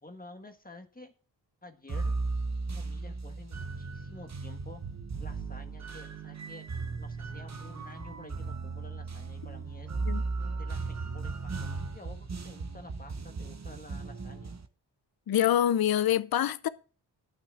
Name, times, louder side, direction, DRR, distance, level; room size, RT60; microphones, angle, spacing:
voice 1, 0.0-1.1 1.6-2.1 2.7-4.8 5.2-6.7 7.0-9.9 10.6-14.6, left 2 dB, 20° left, 1.6 m, -50 dB
sound 1, 1.9-14.7, right 3 dB, 40° right, 1.0 m, -36 dB
voice 2, 15.3-16.7, left 11 dB, 60° left, 0.6 m, -25 dB
11.5 x 6.1 x 6.3 m
wide cardioid pair, 80°, 43 cm